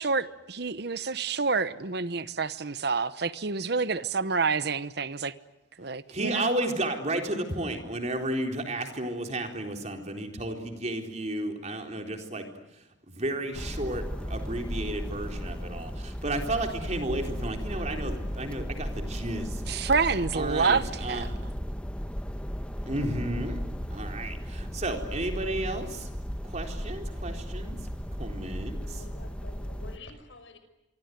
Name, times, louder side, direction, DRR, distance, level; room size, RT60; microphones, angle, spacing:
voice 1, 0.0-5.3 5.8-6.5 19.7-21.3, right 4 dB, 60° right, 1.0 m, -28 dB
voice 2, 6.1-12.4 13.1-19.6 20.3-21.3 22.9-23.6 23.9-26.1 26.4-27.8 28.2-28.8, right 1 dB, 35° right, 4.0 m, -32 dB
sound 1, 13.5-30.0, equal, 5° left, 1.3 m, -35 dB
voice 3, 28.8-30.6, left 2 dB, 85° left, 5.5 m, -48 dB
26.0 x 24.5 x 9.4 m
head